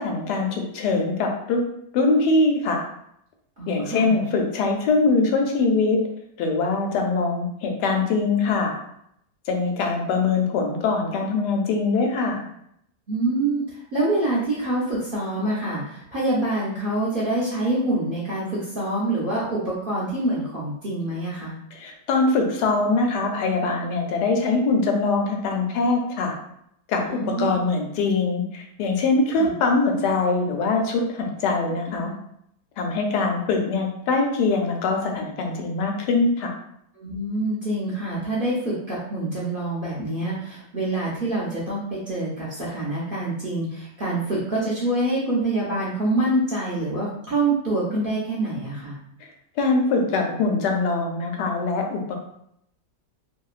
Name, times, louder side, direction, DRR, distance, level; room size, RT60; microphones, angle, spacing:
voice 1, 0.0-1.6 1.9-2.9 3.7-6.0 6.4-8.8 9.5-12.4 21.7-26.4 26.9-32.1 32.8-36.5 49.6-52.2, left 3 dB, 85° left, 2 dB, 1.2 m, -23 dB
voice 2, 3.6-4.2 13.1-21.5 27.1-27.5 29.4-29.5 37.0-49.0, right 2 dB, 50° right, -7 dB, 0.7 m, -26 dB
2.9 x 2.8 x 2.4 m, 0.73 s
omnidirectional pair, 1.7 m